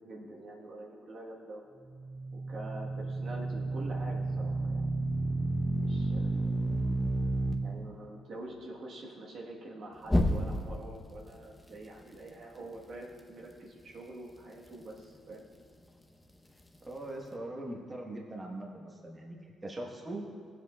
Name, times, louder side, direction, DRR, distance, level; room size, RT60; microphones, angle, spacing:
voice 1, 0.0-1.7 2.3-4.9 5.7-6.5 7.6-15.5, right 1 dB, 60° right, -2 dB, 1.2 m, -46 dB
sound 1, 1.7-7.5 10.1-10.8, right 1 dB, 10° left, 0.8 m, -31 dB
voice 2, 16.8-20.2, right 1 dB, 25° right, -1 dB, 1.2 m, -41 dB
15.0 x 7.8 x 2.3 m, 2.1 s
cardioid pair, 90°, 0 cm